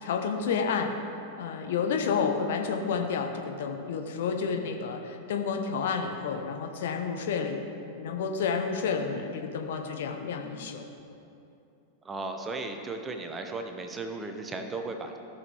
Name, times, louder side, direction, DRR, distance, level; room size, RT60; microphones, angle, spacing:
voice 1, 0.0-1.0 1.4-7.6 7.9-10.8, left 5 dB, 55° left, 4 dB, 0.8 m, -30 dB
voice 2, 12.0-15.2, right 3 dB, 15° right, 5 dB, 0.8 m, -36 dB
15.0 x 6.0 x 3.4 m, 2.7 s
figure-of-eight pair, 90°, 0 cm